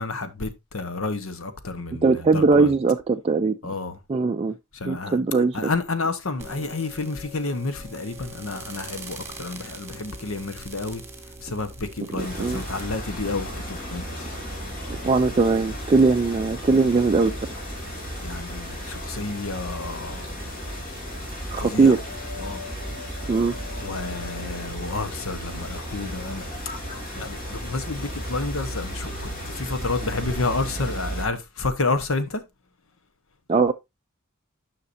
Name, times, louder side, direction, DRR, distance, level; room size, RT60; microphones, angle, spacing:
voice 1, 0.0-2.7 3.6-4.0 4.7-5.2 5.5-11.0 11.4-14.3 18.2-20.3 21.6-22.0 22.4-22.6 23.8-26.4 27.2-32.4, left 3 dB, 70° left, 1.0 m, -30 dB
voice 2, 2.0-3.7 4.1-4.5 4.8-5.7 12.1-12.6 14.9-17.6 21.5-22.0 23.3-23.6 33.5-33.7, right 4 dB, 25° right, 0.3 m, -20 dB
sound 1, 6.4-12.8, right 2 dB, 10° right, 1.8 m, -42 dB
sound 2, 12.2-31.3, equal, 45° left, 3.0 m, -34 dB
9.7 x 5.8 x 2.6 m
head